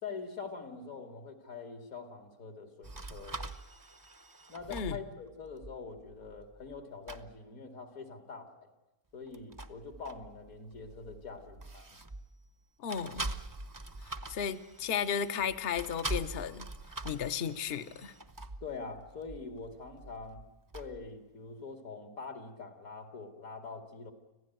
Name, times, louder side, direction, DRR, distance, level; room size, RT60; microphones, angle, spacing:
voice 1, 0.0-3.4 4.5-8.7 9.1-11.8 18.6-20.4 20.7-24.1, left 4 dB, 70° left, 6 dB, 2.9 m, -44 dB
sound 1, 2.8-6.8 7.1-7.3 9.3-12.5 12.9-21.1, right 2 dB, 20° right, 0.6 m, -44 dB
voice 2, 12.8-13.3 14.1-16.7 17.0-18.1, left 8 dB, 45° left, 11 dB, 1.0 m, -34 dB
25.5 x 16.0 x 9.2 m, 1.0 s
omnidirectional pair, 1.6 m